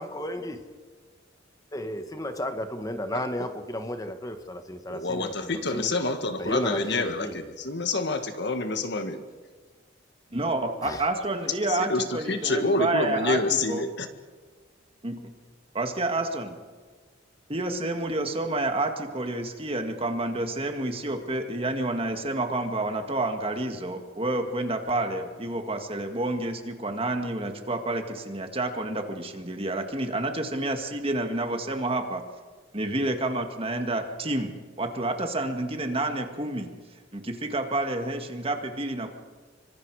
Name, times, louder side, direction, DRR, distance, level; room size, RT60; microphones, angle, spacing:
voice 1, 0.0-0.6 1.7-5.9 6.4-7.5 10.8-11.1, left 1 dB, 20° left, 1.4 m, -34 dB
voice 2, 4.9-9.2 11.6-14.1, left 2 dB, 60° left, 1.7 m, -27 dB
voice 3, 10.3-13.4 13.7-13.9 15.0-15.3 15.7-16.6 17.5-32.2 32.7-36.7 37.1-39.2, right 2 dB, 30° right, 1.9 m, -29 dB
27.0 x 25.0 x 4.9 m
head